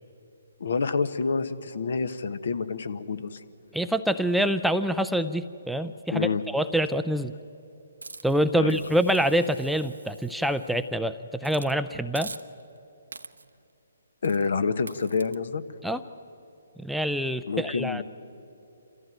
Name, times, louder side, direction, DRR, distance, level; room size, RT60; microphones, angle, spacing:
voice 1, 0.6-3.4 6.1-6.4 8.5-8.8 14.2-15.6 17.5-18.0, left 5 dB, 65° left, 11 dB, 1.2 m, -28 dB
voice 2, 3.7-7.3 8.2-12.3 15.8-16.0 16.8-18.0, right 1 dB, ahead, 9 dB, 0.5 m, -26 dB
Hiss, 8.0-10.9 11.4-11.8 12.2-12.8 13.1-13.6 14.2-14.5 14.9-15.4, right 3 dB, 85° right, 0.9 m, -45 dB
27.0 x 14.5 x 9.2 m, 2.7 s
figure-of-eight pair, 140°, 0 cm